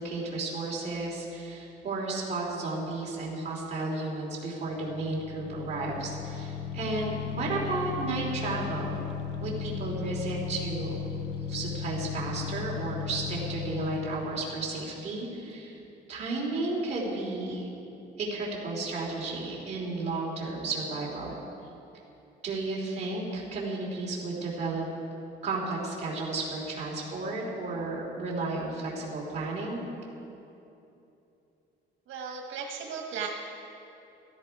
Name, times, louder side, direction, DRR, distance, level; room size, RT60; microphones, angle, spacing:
voice 1, 0.0-9.0 9.4-11.0 11.5-15.8 16.1-17.7 18.2-21.3 22.4-24.8 25.4-29.8, right 3 dB, 35° right, -4 dB, 3.2 m, -33 dB
sound 1, 4.7-14.6, left 7 dB, 65° left, 0.6 m, -36 dB
voice 2, 32.1-33.3, right 6 dB, 85° right, 1 dB, 1.3 m, -36 dB
16.0 x 13.0 x 4.7 m, 2.8 s
cardioid pair, 165°, 20 cm